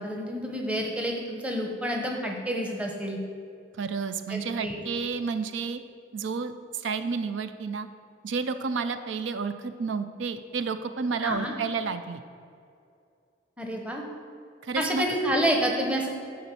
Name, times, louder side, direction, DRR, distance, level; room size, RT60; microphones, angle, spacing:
voice 1, 0.0-3.2 4.3-4.8 11.2-11.5 13.6-14.0 14.8-16.1, equal, 5° right, 1 dB, 0.9 m, -29 dB
voice 2, 3.8-5.8 6.1-7.9 8.2-12.2 14.6-15.0, right 5 dB, 80° right, 10 dB, 0.5 m, -31 dB
10.0 x 3.9 x 6.8 m, 2.5 s
head